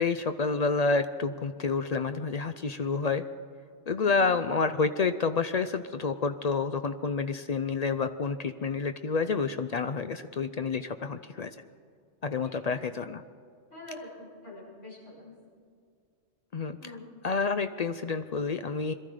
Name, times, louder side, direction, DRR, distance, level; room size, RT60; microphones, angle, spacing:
voice 1, 0.0-3.2 3.9-11.5 12.2-13.2 16.5-17.0 17.2-18.9, left 4 dB, 55° left, 10 dB, 0.4 m, -29 dB
voice 2, 4.0-4.6 12.5-12.6 13.7-15.3 16.8-17.1, left 2 dB, 90° left, -6 dB, 6.1 m, -45 dB
22.0 x 13.0 x 4.9 m, 2.3 s
omnidirectional pair, 1.2 m